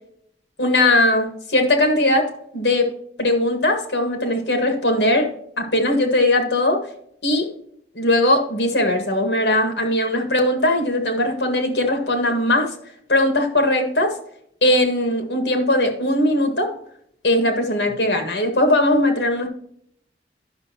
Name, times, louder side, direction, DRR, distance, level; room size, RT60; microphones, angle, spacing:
voice 1, 0.6-2.9 3.2-5.3 5.6-6.8 7.2-7.5 8.0-12.7 13.1-14.1 14.6-16.7 17.2-19.5, left 1 dB, 80° left, 5 dB, 1.7 m, -19 dB
10.5 x 6.5 x 2.9 m, 0.68 s
head